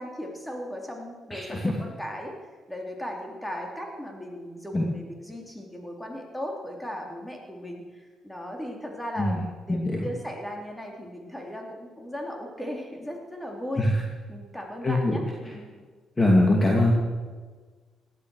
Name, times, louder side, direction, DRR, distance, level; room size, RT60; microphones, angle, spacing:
voice 1, 0.0-13.9 14.3-15.7, equal, 10° left, 1 dB, 3.6 m, -37 dB
voice 2, 1.3-1.7 4.7-4.8 9.2-9.4 9.7-10.1 13.8-13.9 14.8-15.1 16.2-16.9, left 1 dB, 25° left, -1 dB, 2.5 m, -22 dB
17.5 x 12.5 x 6.5 m, 1.4 s
cardioid pair, 90°, 0 cm